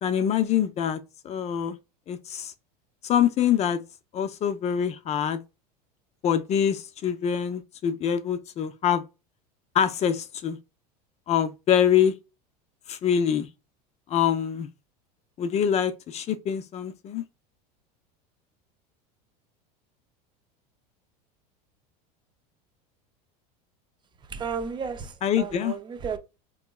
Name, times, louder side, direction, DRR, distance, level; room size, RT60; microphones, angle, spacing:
voice 1, 0.0-1.8 2.1-2.5 3.0-3.8 4.1-5.4 6.2-9.0 9.7-10.6 11.3-12.1 12.9-13.5 14.1-14.7 15.4-17.2 25.2-25.8, left 9 dB, 30° left, 0.5 m, -25 dB
voice 2, 24.3-26.2, right 6 dB, 20° right, 0.5 m, -33 dB
3.6 x 3.0 x 2.2 m
supercardioid pair, 115°, 21 cm